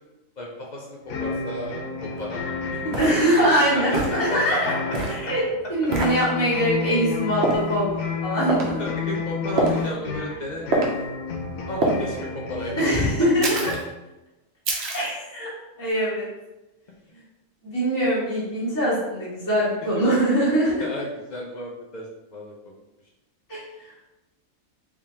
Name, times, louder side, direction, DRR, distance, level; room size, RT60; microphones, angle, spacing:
voice 1, 0.4-3.0 3.7-4.4 8.8-10.8 11.7-13.1 20.8-22.5, left 1 dB, 60° left, -2 dB, 0.4 m, -33 dB
sound 1, 1.1-13.8, left 4 dB, 75° left, 1.0 m, -31 dB
sound 2, 2.2-2.3 2.9-3.2 3.9-4.2 4.9-5.2 5.9-6.2 7.4-7.7 8.5-8.7 9.6-9.9 10.7-10.9 11.8-12.0 13.4-13.8 14.7-15.1, right 2 dB, 55° right, 0.9 m, -24 dB
voice 2, 3.0-4.7 5.1-8.8 12.8-13.6 14.9-15.5 15.8-16.2 17.6-20.7 23.5-23.9, right 1 dB, 15° left, -11 dB, 1.3 m, -23 dB
3.6 x 3.3 x 2.8 m, 1.0 s
omnidirectional pair, 1.4 m